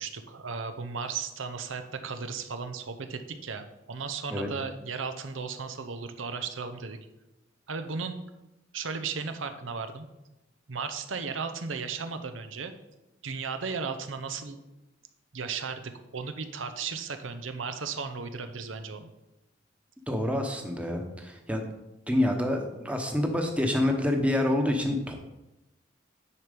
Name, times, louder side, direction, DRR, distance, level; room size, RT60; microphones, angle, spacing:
voice 1, 0.0-7.0 7.7-8.2 8.7-10.1 10.7-12.7 13.2-14.6 15.3-19.1, right 5 dB, 90° right, 9 dB, 0.8 m, -35 dB
voice 2, 20.1-21.6 22.1-25.1, left 1 dB, 5° right, 3 dB, 1.0 m, -27 dB
9.9 x 4.6 x 5.2 m, 0.96 s
head